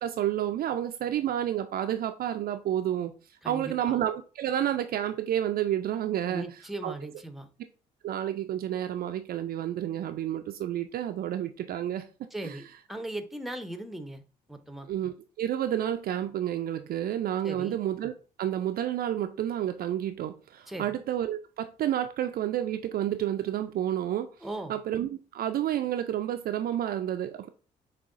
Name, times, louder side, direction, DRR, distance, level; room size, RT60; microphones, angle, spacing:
voice 1, 0.0-3.1 3.5-6.5 6.8-6.9 8.0-12.1 12.4-12.6 14.9-18.1 18.4-24.3 24.7-27.5, right 11 dB, 45° right, 0.4 m, -30 dB
voice 2, 3.4-3.9 6.3-7.5 12.3-14.2 14.5-14.9 17.4-17.8 20.7-21.0 24.4-24.8, right 1 dB, ahead, 0.7 m, -38 dB
6.1 x 2.3 x 2.5 m
figure-of-eight pair, 45°, 21 cm